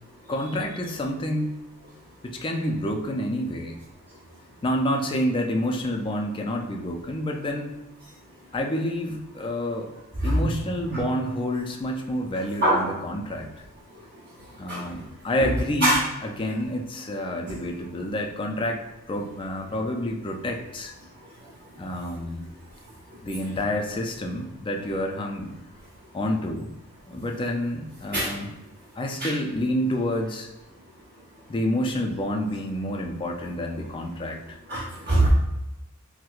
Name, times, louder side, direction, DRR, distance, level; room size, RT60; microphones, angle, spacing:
voice 1, 0.3-1.5 2.2-3.8 4.6-7.7 8.5-9.9 10.2-13.5 14.6-18.8 19.1-20.9 21.8-22.5 23.2-25.5 26.1-26.7 27.1-28.5 29.0-30.5 31.5-34.6 35.1-35.3, left 1 dB, 25° left, 2 dB, 0.3 m, -28 dB
voice 2, 34.7-35.3, right 1 dB, 45° right, -10 dB, 0.9 m, -22 dB
4.4 x 2.1 x 2.4 m, 0.99 s
head